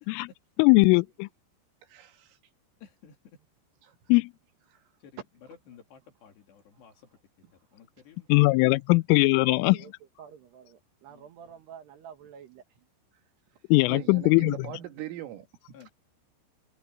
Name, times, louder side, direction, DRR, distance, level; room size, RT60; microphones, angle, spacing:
voice 1, 0.6-1.3 4.1-4.3 8.3-9.8 13.7-14.7, left 25 dB, 85° left, 3.1 m, -20 dB
voice 2, 1.9-2.4 3.9-4.0 4.7-4.8 13.9-15.9, right 13 dB, 90° right, 4.8 m, -41 dB
voice 3, 2.8-3.2 5.0-5.2 5.5-7.2 7.5-8.6 11.1-11.3 15.7-15.9, left 8 dB, 60° left, 4.9 m, -54 dB
voice 4, 9.5-9.9 10.2-12.6, right 7 dB, 65° right, 3.6 m, -48 dB
omnidirectional pair, 5.7 m